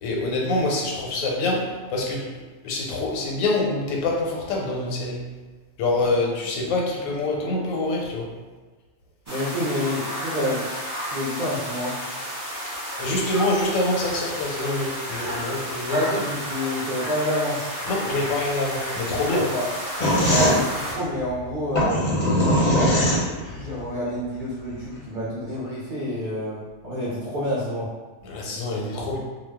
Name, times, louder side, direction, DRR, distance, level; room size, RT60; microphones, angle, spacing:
voice 1, 0.0-2.3 2.6-5.2 5.8-8.3 13.0-16.1 17.9-19.5 28.2-29.2, left 2 dB, 90° left, -1 dB, 1.0 m, -25 dB
sound 1, 9.3-20.9, equal, 15° right, 0.7 m, -32 dB
voice 2, 9.3-10.7 11.1-12.0 15.9-17.6 19.2-19.7 20.1-22.2 23.4-27.9 28.9-29.2, left 1 dB, 55° right, -8 dB, 0.6 m, -28 dB
sound 2, 20.0-23.7, equal, 50° left, 0.6 m, -20 dB
2.3 x 2.0 x 3.4 m, 1.3 s
omnidirectional pair, 1.4 m